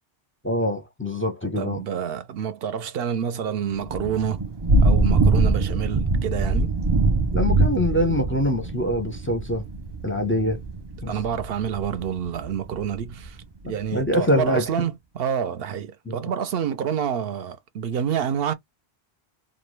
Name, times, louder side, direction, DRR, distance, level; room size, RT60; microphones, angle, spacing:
voice 1, 0.4-1.8 7.3-9.6 10.0-10.6 11.0-11.1 13.6-14.7 16.1-16.2, left 1 dB, 15° left, 0.4 m, -24 dB
voice 2, 1.6-4.4 4.8-6.8 11.1-13.4 13.6-18.5, right 8 dB, 65° right, 0.7 m, -28 dB
Thunder / Rain, 3.7-13.3, right 2 dB, 45° right, 0.3 m, -23 dB
2.5 x 2.2 x 3.0 m
omnidirectional pair, 1.1 m